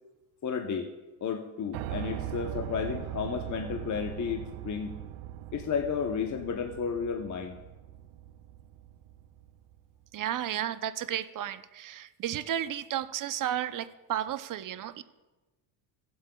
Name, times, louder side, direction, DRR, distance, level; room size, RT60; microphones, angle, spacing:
voice 1, 0.4-0.9 1.2-4.9 5.5-7.6, left 6 dB, 40° left, 4 dB, 0.8 m, -32 dB
Piano, 1.7-9.7, right 12 dB, 85° right, 0.6 m, -40 dB
voice 2, 10.1-15.0, right 11 dB, 45° right, 13 dB, 0.6 m, -33 dB
17.0 x 7.8 x 2.3 m, 1.2 s
supercardioid pair, 90°, 47 cm